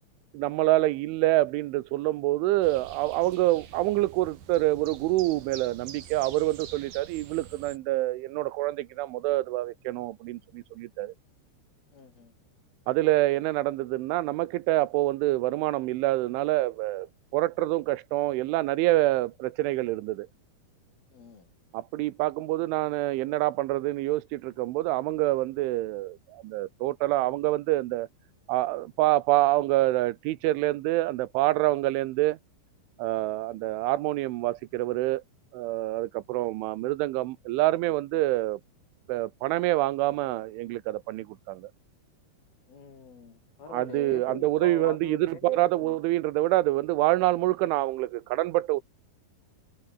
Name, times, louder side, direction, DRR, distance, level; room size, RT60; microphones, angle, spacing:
voice 1, 0.3-11.1 12.9-17.1 17.3-20.3 21.7-28.1 28.5-32.4 33.0-35.2 35.5-38.6 39.1-41.7 43.7-48.8, right 17 dB, 85° right, 3.3 m, -26 dB
sound 1, 2.6-7.8, right 9 dB, 55° right, 3.9 m, -46 dB
voice 2, 11.9-12.3 21.1-21.5 33.5-33.6 42.7-46.0, left 5 dB, 50° left, 6.4 m, -43 dB
omnidirectional pair, 5.5 m